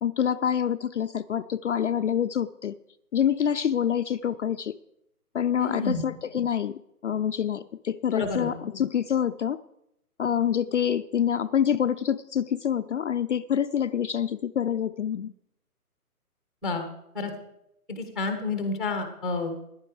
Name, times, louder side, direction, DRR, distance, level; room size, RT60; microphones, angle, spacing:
voice 1, 0.0-2.8 3.1-4.8 5.3-9.6 10.2-15.3, left 9 dB, 55° left, 10 dB, 0.5 m, -26 dB
voice 2, 5.6-6.0 8.1-8.5 16.6-16.9 17.1-17.3 17.9-19.5, left 3 dB, ahead, 5 dB, 0.7 m, -29 dB
14.5 x 10.5 x 4.8 m, 0.79 s
hypercardioid pair, 155°, 45 cm